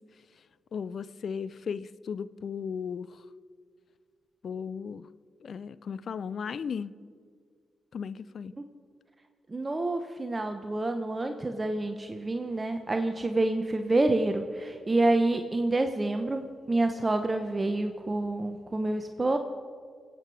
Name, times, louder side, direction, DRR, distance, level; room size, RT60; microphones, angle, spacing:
voice 1, 0.7-3.2 4.4-5.1 5.4-6.9 7.9-8.5, left 6 dB, 65° left, 17 dB, 0.5 m, -36 dB
voice 2, 9.5-19.4, right 2 dB, 30° right, 6 dB, 1.0 m, -28 dB
23.5 x 8.8 x 4.8 m, 2.1 s
supercardioid pair, 45°, 0 cm